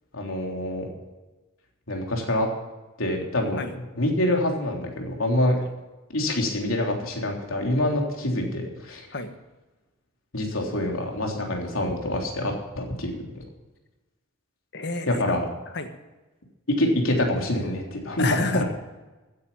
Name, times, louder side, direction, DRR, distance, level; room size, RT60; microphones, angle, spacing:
voice 1, 0.1-0.9 1.9-2.5 3.0-3.6 4.0-5.5 6.1-9.1 10.3-13.4 15.1-15.4 16.7-18.6, left 1 dB, 85° left, 1 dB, 3.4 m, -26 dB
voice 2, 14.7-15.3 15.7-15.9 18.2-18.6, left 3 dB, 55° left, 7 dB, 1.5 m, -29 dB
15.5 x 9.7 x 5.7 m, 1.1 s
head